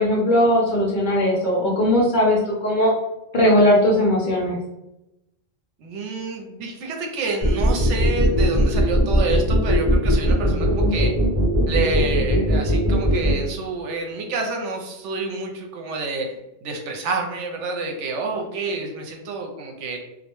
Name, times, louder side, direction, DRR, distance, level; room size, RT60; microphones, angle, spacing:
voice 1, 0.0-2.9 3.3-4.6, left 1 dB, 55° left, -4 dB, 0.5 m, -18 dB
voice 2, 5.8-11.2 11.7-16.3 16.6-20.0, right 3 dB, 80° right, 2 dB, 0.9 m, -28 dB
sound 1, 7.4-13.3, equal, 30° right, 0.9 m, -18 dB
2.2 x 2.1 x 2.9 m, 0.91 s
omnidirectional pair, 1.2 m